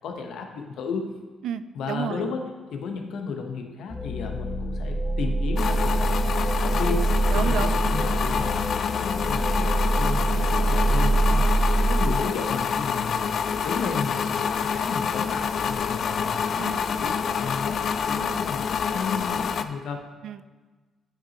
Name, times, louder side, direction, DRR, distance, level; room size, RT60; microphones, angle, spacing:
voice 1, 0.0-1.1 1.7-2.4 2.7-6.3 6.6-13.3 13.6-17.8 18.1-20.0, left 5 dB, 75° left, 4 dB, 0.9 m, -33 dB
voice 2, 1.4-2.2 7.3-8.1 10.3-10.5 11.3-11.6 16.6-17.1 18.1-18.4 20.2-20.4, right 9 dB, 75° right, 13 dB, 0.3 m, -33 dB
sound 1, 3.9-12.1, right 2 dB, ahead, 1.1 m, -24 dB
sound 2, 5.6-19.6, left 6 dB, 60° left, 0.4 m, -27 dB
10.0 x 5.7 x 2.9 m, 1.3 s
cardioid pair, 90°, 0 cm